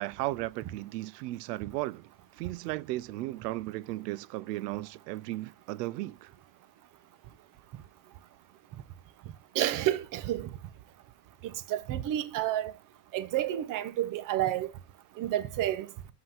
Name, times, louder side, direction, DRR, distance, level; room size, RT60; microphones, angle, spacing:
voice 1, 0.0-2.0 2.4-6.3, right 18 dB, 80° right, 0.6 m, -35 dB
voice 2, 9.5-10.5 11.7-12.7 13.1-14.7 15.2-15.9, right 12 dB, 40° right, 0.8 m, -30 dB
5.5 x 3.8 x 5.6 m
supercardioid pair, 115°, 48 cm